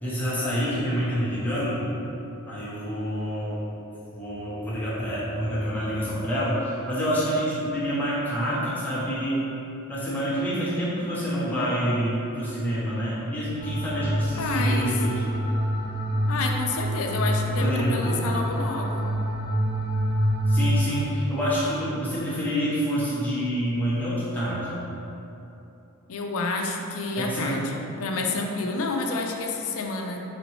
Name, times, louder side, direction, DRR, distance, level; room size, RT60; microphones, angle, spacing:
voice 1, 0.0-1.9 2.5-3.6 4.1-9.5 9.9-15.2 17.6-18.1 20.5-24.8 27.1-27.6, equal, 10° left, -10 dB, 0.9 m, -27 dB
sound 1, 13.6-21.0, equal, 40° left, 1.0 m, -26 dB
voice 2, 14.4-14.9 16.3-19.1 26.1-30.2, left 3 dB, 65° left, 2 dB, 0.4 m, -29 dB
4.1 x 3.0 x 3.1 m, 2.9 s
head